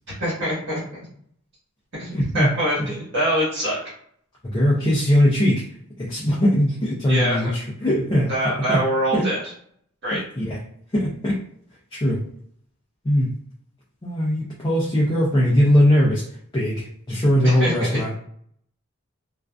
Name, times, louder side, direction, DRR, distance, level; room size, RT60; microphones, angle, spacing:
voice 1, 0.2-0.8 2.0-3.8 7.1-7.5 8.3-9.5 10.0-10.2 17.4-18.2, right 1 dB, 55° right, -8 dB, 1.2 m, -24 dB
voice 2, 2.1-2.5 2.8-2.9 4.4-5.7 6.0-8.8 9.1-9.3 10.1-10.6 10.9-11.4 11.9-12.3 13.0-13.4 14.0-16.2 16.5-18.1, equal, 20° left, -5 dB, 0.4 m, -20 dB
2.4 x 2.4 x 2.2 m, 0.66 s
head